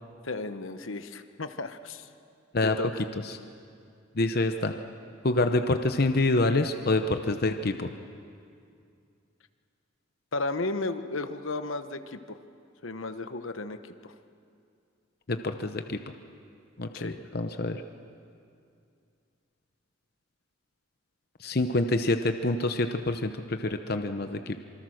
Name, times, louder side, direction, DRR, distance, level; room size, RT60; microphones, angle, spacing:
voice 1, 0.2-2.1 2.6-3.0 10.3-12.4 12.8-14.1 16.9-17.2, left 2 dB, 75° left, 10 dB, 1.0 m, -34 dB
voice 2, 4.2-4.7 5.2-7.9 15.3-16.0 16.8-17.8 21.4-24.6, left 2 dB, 50° left, 7 dB, 0.8 m, -27 dB
26.5 x 24.5 x 6.4 m, 2.4 s
head